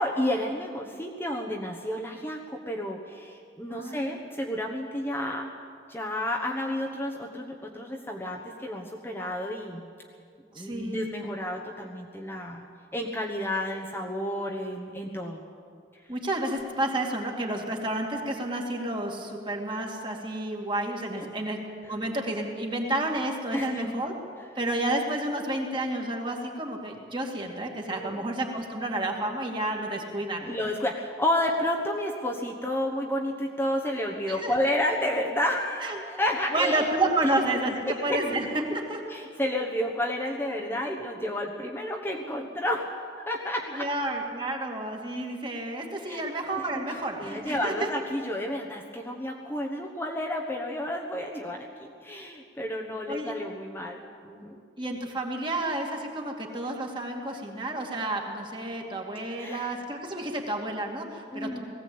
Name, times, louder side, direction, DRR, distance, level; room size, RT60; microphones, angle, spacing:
voice 1, 0.0-5.5 5.9-9.8 10.5-15.4 21.1-21.3 23.5-23.9 27.9-28.2 30.4-36.9 37.2-37.3 37.9-38.2 39.1-43.9 46.1-46.2 46.6-46.8 47.2-54.6 59.4-59.7 61.3-61.6, left 1 dB, 15° left, 0 dB, 1.3 m, -31 dB
voice 2, 3.7-4.2 10.5-11.1 16.1-24.1 24.5-30.5 34.3-34.5 35.8-36.0 36.5-39.0 43.7-47.9 53.1-53.3 54.8-61.6, right 1 dB, 25° right, 1 dB, 2.5 m, -30 dB
19.5 x 16.0 x 8.7 m, 2.2 s
head